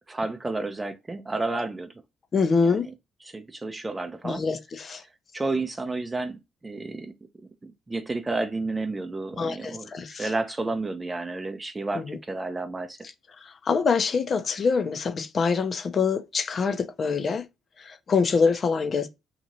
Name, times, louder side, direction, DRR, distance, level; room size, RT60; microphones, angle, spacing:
voice 1, 0.1-1.9 2.8-2.9 3.2-4.4 5.3-7.1 7.6-13.0, right 3 dB, 25° right, 0.5 m, -31 dB
voice 2, 2.3-2.9 4.2-5.0 9.3-10.3 11.9-12.2 13.4-17.4 17.8-19.1, left 5 dB, 45° left, 0.6 m, -25 dB
2.8 x 2.5 x 2.8 m
hypercardioid pair, 50°, 0 cm